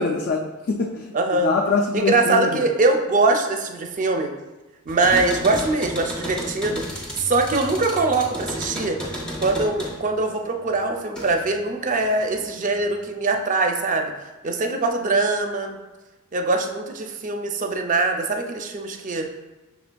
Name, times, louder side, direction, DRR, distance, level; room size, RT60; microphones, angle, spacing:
voice 1, 0.0-2.6, left 4 dB, 55° left, 0 dB, 0.4 m, -24 dB
voice 2, 1.1-1.5 1.9-4.3 4.9-6.8 7.2-9.0 9.4-14.1 14.4-15.8 16.3-19.3, right 3 dB, 35° right, 4 dB, 0.4 m, -22 dB
sound 1, 4.9-11.6 12.0-12.8, equal, 5° left, 0.7 m, -33 dB
5.9 x 3.4 x 2.2 m, 1.1 s
head